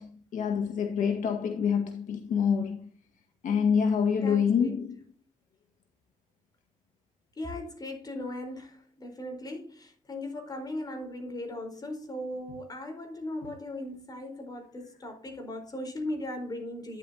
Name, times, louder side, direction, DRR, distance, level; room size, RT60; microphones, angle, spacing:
voice 1, 0.0-2.9 3.4-5.0, left 7 dB, 80° left, 1.8 m, -26 dB
voice 2, 4.2-4.9 7.4-17.0, left 1 dB, 30° left, 4.4 m, -38 dB
13.0 x 10.0 x 2.9 m
cardioid pair, 115°, 13 cm